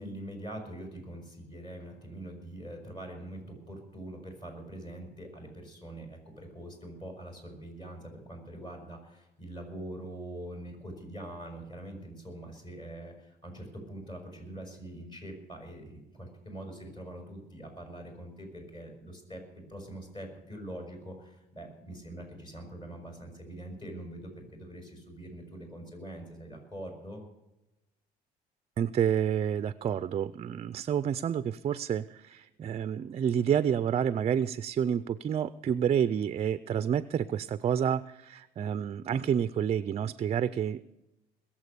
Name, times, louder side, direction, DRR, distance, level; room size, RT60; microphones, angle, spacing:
voice 1, 0.0-27.2, right 1 dB, 25° left, 3 dB, 5.9 m, -44 dB
voice 2, 28.8-40.8, right 8 dB, 40° right, 15 dB, 0.5 m, -29 dB
21.0 x 7.4 x 6.8 m, 0.94 s
cardioid pair, 110°, 17 cm